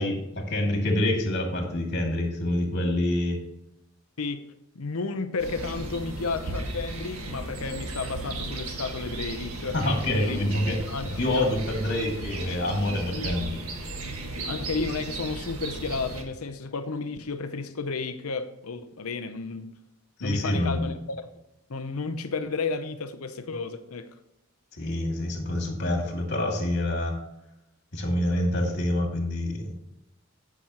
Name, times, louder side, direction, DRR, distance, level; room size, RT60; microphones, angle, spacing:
voice 1, 0.0-3.4 9.7-10.8 11.2-13.6 20.2-20.8 24.7-27.2 27.9-29.7, left 1 dB, 50° left, 2.4 m, -26 dB
voice 2, 4.8-9.8 10.2-10.4 10.9-11.5 13.1-13.4 14.4-19.7 20.2-21.3 21.7-24.1, left 4 dB, 80° left, 0.7 m, -32 dB
sound 1, 5.4-16.2, right 2 dB, 85° right, 1.7 m, -35 dB
16.0 x 6.1 x 3.0 m
head